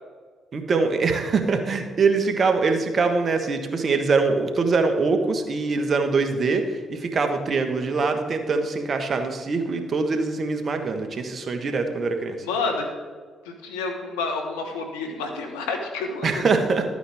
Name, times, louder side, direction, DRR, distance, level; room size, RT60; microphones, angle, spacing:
voice 1, 0.5-12.4 16.2-16.8, right 4 dB, 50° right, 6 dB, 1.4 m, -23 dB
voice 2, 12.4-12.9 13.4-16.5, left 4 dB, 90° left, 4 dB, 1.4 m, -29 dB
13.0 x 9.0 x 3.6 m, 1.5 s
hypercardioid pair, 50°, 0 cm